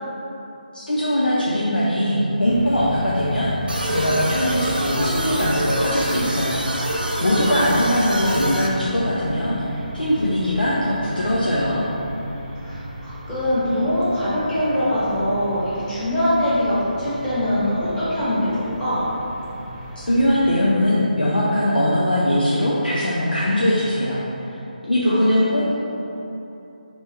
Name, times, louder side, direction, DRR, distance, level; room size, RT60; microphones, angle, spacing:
voice 1, 0.7-11.8 20.0-24.2 24.5-25.7, left 1 dB, 75° left, -7 dB, 0.6 m, -21 dB
sound 1, 2.5-20.5, right 1 dB, 20° right, 0.4 m, -35 dB
sound 2, 3.7-8.7, right 1 dB, 75° right, 0.6 m, -25 dB
voice 2, 7.4-7.8 12.6-19.1 25.1-25.6, left 1 dB, 10° left, -13 dB, 1.1 m, -23 dB
4.1 x 3.1 x 3.3 m, 2.9 s
figure-of-eight pair, 150°, 5 cm